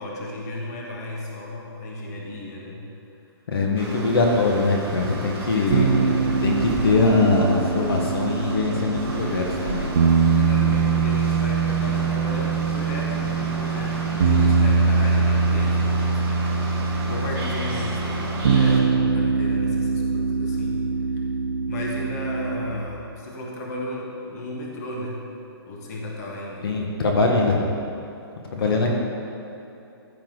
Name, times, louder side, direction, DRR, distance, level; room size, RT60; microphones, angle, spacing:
voice 1, 0.0-2.9 5.5-6.3 10.3-16.6 17.1-20.8 21.7-25.2 25.7-26.8 28.5-28.9, left 1 dB, 40° left, -2 dB, 1.6 m, -34 dB
voice 2, 3.5-6.1 6.4-9.9 26.6-27.6 28.5-28.9, left 3 dB, 65° left, 0 dB, 1.6 m, -22 dB
sound 1, 3.8-18.8, right 2 dB, 15° right, 1.6 m, -33 dB
sound 2, 5.7-22.7, right 5 dB, 60° right, 0.9 m, -23 dB
14.0 x 7.6 x 4.0 m, 2.8 s
hypercardioid pair, 160°, 14 cm